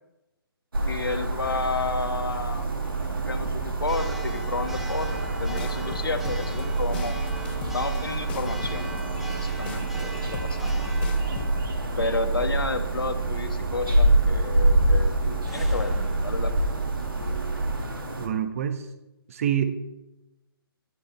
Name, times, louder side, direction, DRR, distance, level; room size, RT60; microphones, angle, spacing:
sound 1, 0.7-18.3, right 1 dB, 65° right, 2.4 m, -28 dB
voice 1, 0.8-2.7 3.3-7.2 7.7-8.9 9.4-10.9 12.0-16.5, left 3 dB, 65° left, 7 dB, 1.8 m, -31 dB
Church bell, 1.4-17.8, right 5 dB, ahead, 1.4 m, -31 dB
sound 2, 5.6-11.6, left 8 dB, 25° left, 0.9 m, -39 dB
voice 2, 18.2-18.9 19.3-19.7, right 9 dB, 35° right, 10 dB, 1.3 m, -26 dB
19.0 x 13.0 x 3.3 m, 0.96 s
figure-of-eight pair, 135°, 13 cm